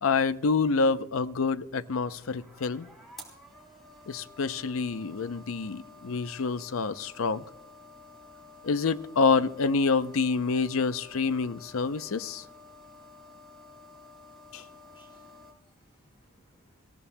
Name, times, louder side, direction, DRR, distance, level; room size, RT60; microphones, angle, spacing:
voice 1, 0.0-2.9 4.1-7.4 8.6-12.4 14.5-14.6, left 4 dB, 75° left, 0.6 m, -27 dB
sound 1, 1.9-15.5, left 2 dB, ahead, 3.3 m, -51 dB
voice 2, 14.5-16.8, equal, 25° left, 6.8 m, -66 dB
26.0 x 15.5 x 2.2 m
head